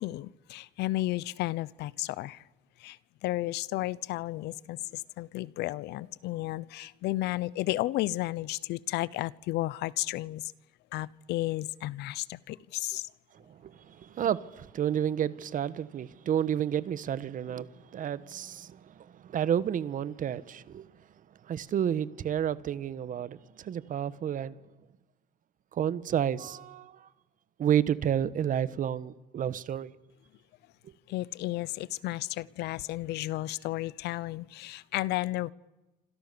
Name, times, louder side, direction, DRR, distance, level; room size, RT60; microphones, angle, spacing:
voice 1, 0.0-2.4 2.8-10.5 10.9-13.1 31.1-35.5, left 17 dB, 85° left, 0.8 m, -33 dB
voice 2, 13.3-21.1 21.4-24.6 25.7-27.1 27.6-29.9 30.8-30.9, right 9 dB, 50° right, 1.3 m, -31 dB
28.5 x 26.5 x 7.0 m
cardioid pair, 110°, 17 cm